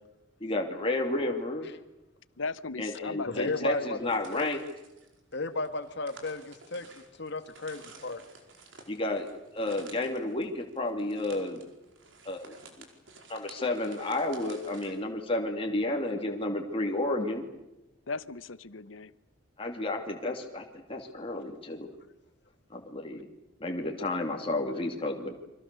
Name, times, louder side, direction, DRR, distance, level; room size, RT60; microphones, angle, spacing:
voice 1, 0.4-1.7 2.8-4.6 8.9-9.3 9.5-11.6 12.2-12.9 13.3-17.4 19.6-21.9 22.7-23.3 23.6-25.3, left 2 dB, 30° left, 1 dB, 2.6 m, -31 dB
voice 2, 2.4-3.9 18.1-19.1, left 4 dB, 85° left, 17 dB, 0.9 m, -37 dB
voice 3, 3.2-4.0 4.3-4.5 5.3-6.9 7.2-8.2, left 3 dB, 60° left, 9 dB, 1.9 m, -34 dB
sound 1, 4.1-15.0, right 3 dB, 75° right, 4.9 m, -52 dB
29.5 x 24.5 x 6.9 m, 0.95 s
head